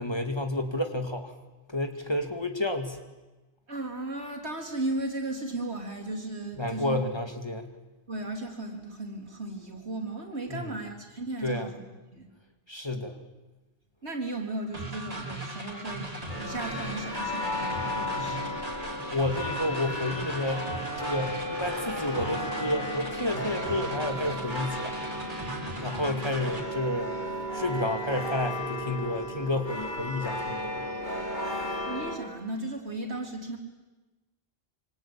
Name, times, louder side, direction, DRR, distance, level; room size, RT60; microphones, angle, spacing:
voice 1, 0.0-1.3 1.7-3.0 6.6-7.7 10.5-10.8 11.4-11.7 12.7-13.2 19.1-25.0 25.8-27.1 27.5-30.8, left 1 dB, 25° left, 5 dB, 2.2 m, -30 dB
voice 2, 3.7-7.0 8.1-11.8 12.1-12.3 14.0-16.1 16.4-18.5 26.0-26.2 31.8-33.6, right 2 dB, 85° right, 1 dB, 4.1 m, -35 dB
sound 1, 14.7-26.6, right 2 dB, 35° right, 3.2 m, -38 dB
sound 2, 16.3-32.2, left 1 dB, 45° left, 3.9 m, -34 dB
26.0 x 25.0 x 8.9 m, 1.2 s
omnidirectional pair, 1.1 m